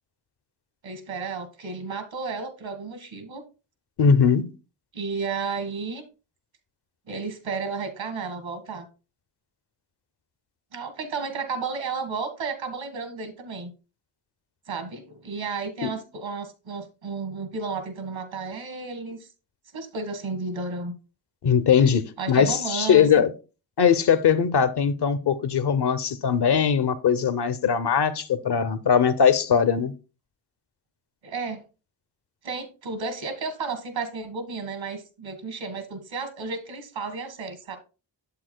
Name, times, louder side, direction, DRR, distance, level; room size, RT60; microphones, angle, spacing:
voice 1, 0.8-3.4 4.9-6.0 7.1-8.9 10.7-13.7 14.7-19.3 19.7-20.9 22.2-23.2 31.2-31.6 32.4-37.8, right 4 dB, 75° right, 1.6 m, -32 dB
voice 2, 4.0-4.5 15.8-16.0 21.4-23.3 23.8-29.9, left 7 dB, 60° left, 0.8 m, -20 dB
8.5 x 7.3 x 2.2 m
cardioid pair, 45°, 46 cm